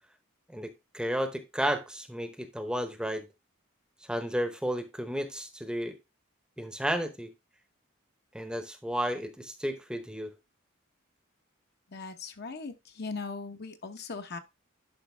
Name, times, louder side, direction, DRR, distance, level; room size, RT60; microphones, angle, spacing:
voice 1, 0.5-3.2 4.1-6.0 6.6-7.3 8.3-10.3, equal, 5° right, 0.8 m, -32 dB
voice 2, 11.9-14.4, left 4 dB, 50° left, 0.9 m, -39 dB
10.5 x 5.3 x 3.3 m
head